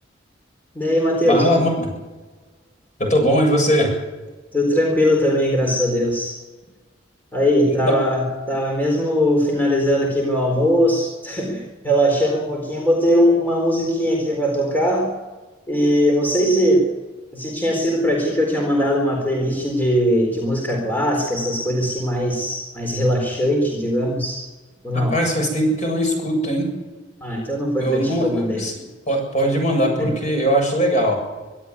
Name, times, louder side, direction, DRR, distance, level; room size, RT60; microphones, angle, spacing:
voice 1, 0.7-1.6 4.5-6.4 7.3-15.1 15.7-16.9 17.3-24.4 24.8-25.1 27.2-28.6 30.0-30.1, equal, 10° left, 0 dB, 4.1 m, -20 dB
voice 2, 1.3-1.7 3.0-4.0 7.6-7.9 24.9-26.7 27.8-28.7 29.1-31.2, equal, 40° left, 2 dB, 7.5 m, -20 dB
24.5 x 12.5 x 9.6 m, 1.3 s
head